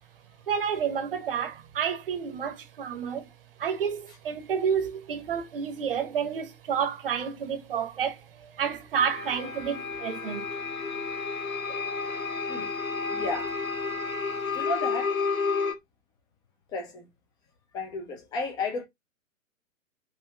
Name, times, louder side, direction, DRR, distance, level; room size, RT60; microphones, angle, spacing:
voice 1, 0.5-3.3 3.6-10.5 11.7-11.8, right 7 dB, 40° right, 1.0 m, -30 dB
sound 1, 9.0-15.7, left 5 dB, 80° left, 1.0 m, -31 dB
voice 2, 13.1-13.6 14.5-15.3 16.7-17.1 17.7-18.8, left 3 dB, 10° left, 0.7 m, -33 dB
5.5 x 2.9 x 2.8 m
figure-of-eight pair, 125°, 41 cm